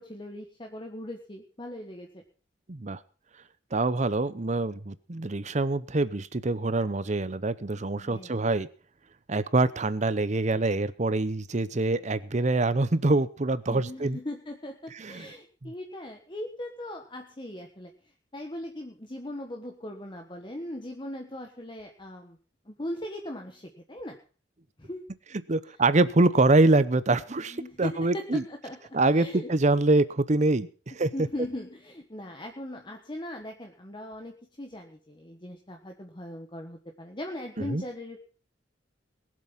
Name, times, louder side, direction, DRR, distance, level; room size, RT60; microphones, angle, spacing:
voice 1, 0.0-2.2 8.0-8.4 13.7-17.9 18.3-22.4 22.6-24.2 24.8-25.0 27.5-28.8 29.1-29.5 31.1-38.2, left 1 dB, 25° left, 3 dB, 1.4 m, -39 dB
voice 2, 2.7-3.0 3.7-8.7 9.3-14.2 15.0-15.3 15.6-15.7 25.5-28.4 28.9-30.7 31.0-31.1 37.6-37.8, right 2 dB, 40° right, 16 dB, 0.7 m, -25 dB
21.0 x 7.7 x 5.7 m, 0.39 s
head